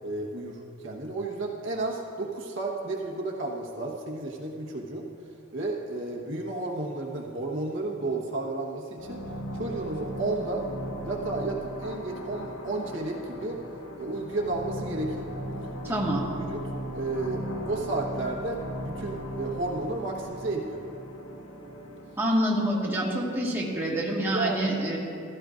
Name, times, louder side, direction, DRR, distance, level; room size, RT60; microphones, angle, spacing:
voice 1, 0.0-5.1 5.5-9.2 9.5-10.7 11.0-13.6 14.0-15.3 15.9-16.0 16.4-16.6 16.9-20.8 24.3-24.8, right 2 dB, 60° right, -1 dB, 1.2 m, -32 dB
sound 1, 9.0-22.3, equal, 70° left, 1.1 m, -37 dB
voice 2, 15.8-16.2 22.2-25.0, right 1 dB, 10° right, -5 dB, 1.6 m, -27 dB
15.5 x 14.0 x 2.5 m, 2.6 s
head